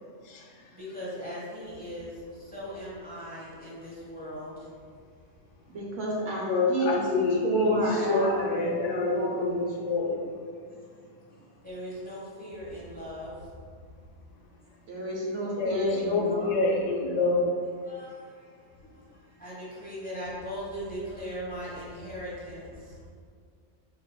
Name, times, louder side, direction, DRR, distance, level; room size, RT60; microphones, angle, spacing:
voice 1, 0.7-4.7 10.7-11.0 11.3-13.4 14.6-14.7 17.8-23.0, equal, 10° left, -7 dB, 0.8 m, -40 dB
voice 2, 5.7-7.1 7.4-9.6 14.9-16.6, right 1 dB, 75° right, -4 dB, 1.1 m, -30 dB
voice 3, 6.5-10.2 15.6-17.5, left 3 dB, 80° left, 1 dB, 0.9 m, -27 dB
4.8 x 3.4 x 2.2 m, 2.1 s
omnidirectional pair, 1.3 m